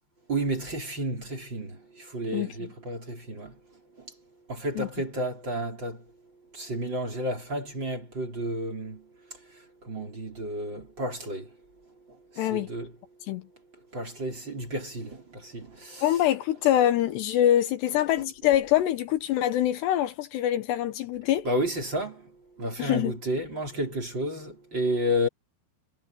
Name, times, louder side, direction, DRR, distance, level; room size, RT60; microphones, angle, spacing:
voice 1, 0.3-3.5 4.5-6.0 6.5-9.1 9.8-11.5 12.3-12.9 13.9-16.2 18.2-18.3 21.4-22.3 22.6-25.3, equal, 25° right, 4.9 m, -31 dB
voice 2, 12.4-12.7 13.3-13.5 16.0-21.5 22.8-23.2, left 12 dB, 75° left, 3.1 m, -24 dB
omnidirectional pair, 5.1 m